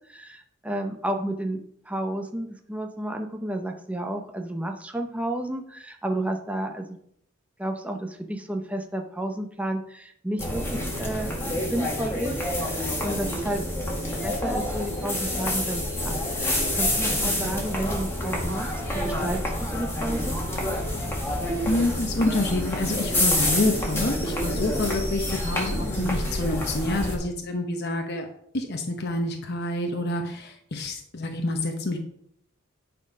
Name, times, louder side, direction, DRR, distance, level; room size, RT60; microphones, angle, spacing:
voice 1, 0.1-7.0 7.6-13.7 14.2-18.7 18.9-20.4, right 1 dB, 5° right, 4 dB, 0.6 m, -31 dB
sound 1, 10.4-27.1, left 1 dB, 10° left, 1.8 m, -28 dB
voice 2, 17.2-17.5 21.3-28.3 28.5-32.0, left 2 dB, 50° left, 4 dB, 0.9 m, -28 dB
10.5 x 4.4 x 5.4 m, 0.69 s
head